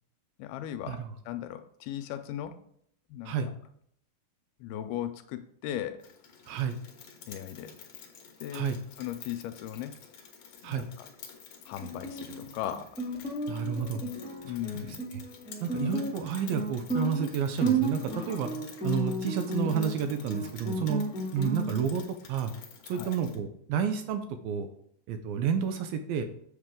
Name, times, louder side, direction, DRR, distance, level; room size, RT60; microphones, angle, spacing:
voice 1, 0.4-2.6 3.1-3.5 4.6-6.1 7.3-7.7 8.4-10.0 10.6-11.1 11.7-12.9 14.4-15.0 22.9-23.2, left 11 dB, 85° left, 9 dB, 2.5 m, -37 dB
Rain, 6.0-23.4, left 7 dB, 65° left, 1.8 m, -50 dB
Guitar, 11.8-21.8, right 2 dB, 10° right, 0.4 m, -33 dB
voice 2, 13.5-14.0 14.8-15.0 15.6-18.5 18.8-21.0 21.3-22.5 22.9-24.7 25.1-26.3, right 7 dB, 80° right, 8 dB, 2.3 m, -30 dB
8.0 x 6.7 x 3.7 m, 0.67 s
omnidirectional pair, 4.5 m